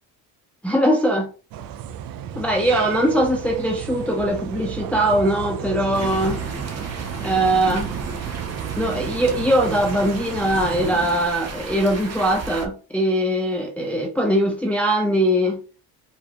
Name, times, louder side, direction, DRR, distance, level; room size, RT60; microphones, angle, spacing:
voice 1, 0.6-1.3 2.4-6.4 7.2-7.9 8.8-15.6, right 1 dB, 5° left, 0.6 m, -21 dB
sound 1, 1.5-10.9, right 10 dB, 60° right, 0.5 m, -32 dB
sound 2, 5.9-12.7, right 4 dB, 40° right, 1.0 m, -33 dB
5.0 x 2.3 x 2.8 m
cardioid pair, 115°, 40 cm